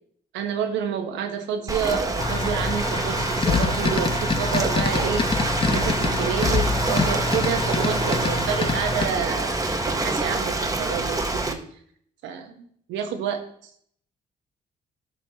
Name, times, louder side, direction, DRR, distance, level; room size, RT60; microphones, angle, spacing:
voice 1, 0.3-11.6 12.2-13.7, right 7 dB, 90° right, 5 dB, 1.1 m, -29 dB
Ocean, 1.7-11.5, right 2 dB, 20° right, 1.0 m, -26 dB
sound 1, 2.2-9.1, left 4 dB, 30° left, 0.8 m, -26 dB
12.5 x 5.7 x 2.9 m, 0.63 s
supercardioid pair, 65°, 18 cm